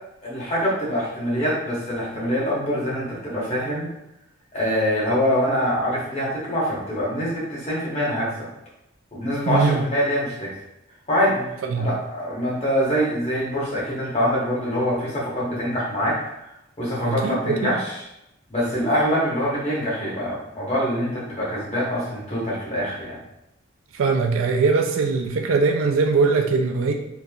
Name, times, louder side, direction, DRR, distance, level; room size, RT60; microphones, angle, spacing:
voice 1, 0.2-3.9 4.5-8.5 9.1-10.5 11.1-11.5 11.8-16.2 16.8-18.0 18.5-23.2, equal, 30° left, -6 dB, 0.9 m, -24 dB
voice 2, 9.5-9.9 11.6-11.9 17.0-17.8 23.9-26.9, right 4 dB, 80° right, 4 dB, 0.4 m, -21 dB
3.0 x 2.5 x 2.3 m, 0.85 s
head